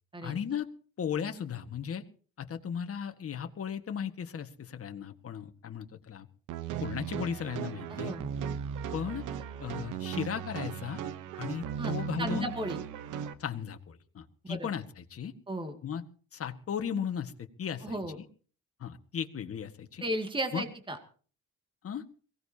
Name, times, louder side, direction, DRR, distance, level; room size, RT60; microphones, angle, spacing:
voice 1, 0.2-0.7 1.0-2.0 2.4-6.3 6.8-8.1 8.9-9.2 9.6-11.0 11.4-12.5 13.4-15.3 15.8-16.0 16.3-17.3 17.6-18.2 18.8-20.0 20.5-20.6 21.8-22.0, left 8 dB, 50° left, 6 dB, 1.7 m, -36 dB
sound 1, 6.5-13.3, right 8 dB, 90° right, 1.1 m, -37 dB
voice 2, 7.9-8.3 11.8-11.9 12.2-12.8 14.5-14.7 15.5-15.8 17.8-18.2 20.0-21.0, right 1 dB, 15° right, 5 dB, 2.3 m, -34 dB
23.0 x 17.5 x 2.9 m, 0.42 s
cardioid pair, 90°, 30 cm